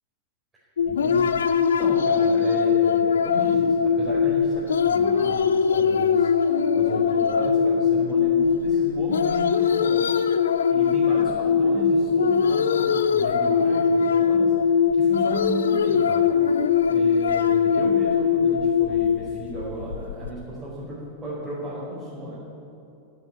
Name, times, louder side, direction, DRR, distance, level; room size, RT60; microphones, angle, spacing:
sound 1, 0.8-20.3, left 6 dB, 65° left, 0.6 m, -21 dB
voice 1, 0.8-10.0 10.7-16.6 16.9-22.4, right 1 dB, 20° right, -8 dB, 4.8 m, -35 dB
12.5 x 9.9 x 9.8 m, 2.7 s
figure-of-eight pair, 90°, 0 cm